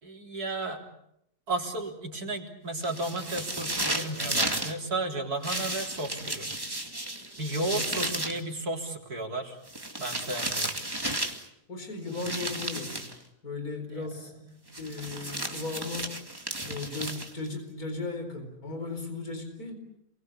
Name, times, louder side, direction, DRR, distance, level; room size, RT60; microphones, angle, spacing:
voice 1, 0.0-0.8 1.5-6.6 7.4-9.6 10.0-10.7 12.0-12.1 13.9-14.3, right 2 dB, 75° right, 1 dB, 4.3 m, -33 dB
sound 1, 2.8-4.7 5.4-8.4 9.7-11.5 12.1-13.2 14.7-17.5, right 1 dB, 15° right, 2.3 m, -33 dB
voice 2, 11.7-14.3 14.8-16.1 16.6-19.8, left 3 dB, 70° left, 6 dB, 5.0 m, -36 dB
29.0 x 23.0 x 8.1 m, 0.77 s
omnidirectional pair, 1.6 m